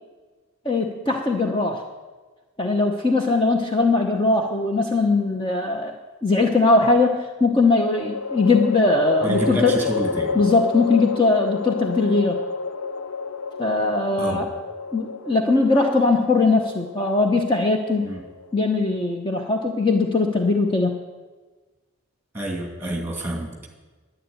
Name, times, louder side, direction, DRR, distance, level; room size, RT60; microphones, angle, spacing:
voice 1, 0.6-1.8 2.6-6.0 6.2-9.8 10.3-12.4 13.6-14.5 14.9-18.1 18.5-20.9, left 3 dB, 25° left, 2 dB, 0.9 m, -20 dB
sound 1, 4.6-5.4 7.7-19.0, left 5 dB, 80° left, 0.6 m, -30 dB
voice 2, 9.2-10.3 14.2-14.4 18.0-18.2 22.3-23.5, right 1 dB, 10° right, 2 dB, 2.5 m, -28 dB
11.0 x 10.0 x 9.1 m, 1.3 s
head